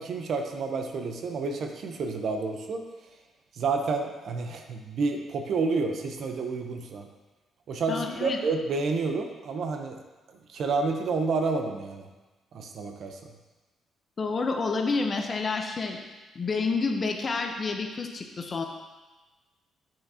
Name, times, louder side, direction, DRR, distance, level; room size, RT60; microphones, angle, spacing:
voice 1, 0.0-2.8 3.5-7.1 7.7-10.0 10.3-12.1 12.5-13.2, right 4 dB, 65° right, 4 dB, 0.8 m, -29 dB
voice 2, 7.9-8.4 14.2-16.0 16.3-18.6, left 4 dB, 40° left, 4 dB, 0.8 m, -29 dB
8.5 x 5.8 x 2.8 m, 1.2 s
cardioid pair, 90°, 0 cm